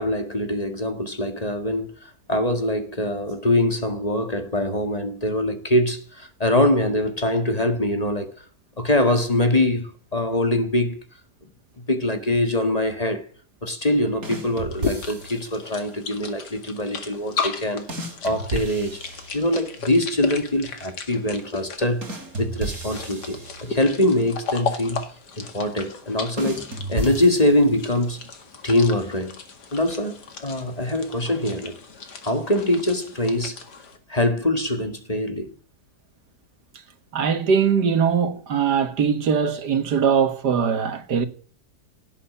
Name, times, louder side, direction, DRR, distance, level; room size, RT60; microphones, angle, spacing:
voice 1, 0.0-8.4 8.8-11.0 11.9-13.3 13.6-25.0 25.4-28.2 28.6-29.4 29.7-31.7 32.2-33.6 34.1-35.5, left 1 dB, 25° left, 1.7 m, -23 dB
sound 1, 14.2-15.6 17.9-19.9 22.0-24.2 26.4-28.0, right 2 dB, 60° right, 3.3 m, -33 dB
sound 2, 14.7-34.0, left 5 dB, 85° left, 2.6 m, -35 dB
voice 2, 37.1-41.3, right 6 dB, 80° right, 2.1 m, -21 dB
17.0 x 7.5 x 9.7 m
omnidirectional pair, 1.7 m